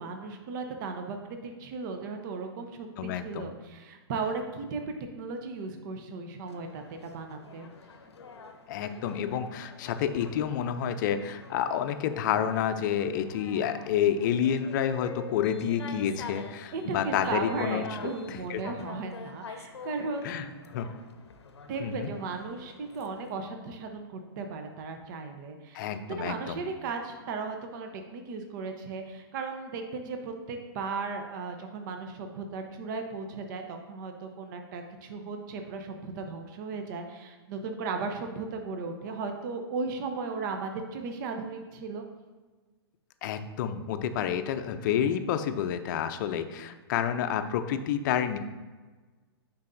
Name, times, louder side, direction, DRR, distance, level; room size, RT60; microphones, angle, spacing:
voice 1, 0.0-7.7 16.7-20.5 21.7-25.9 26.2-42.0, right 4 dB, 50° right, 5 dB, 0.7 m, -36 dB
voice 2, 3.0-3.5 8.7-17.8 18.3-18.6 20.2-20.5 20.7-20.9 21.8-22.1 25.7-26.6 43.2-48.4, left 9 dB, 45° left, 9 dB, 0.5 m, -29 dB
sound 1, 6.5-23.3, left 4 dB, 85° left, 0.7 m, -47 dB
9.5 x 4.0 x 2.6 m, 1.3 s
hypercardioid pair, 130°, 14 cm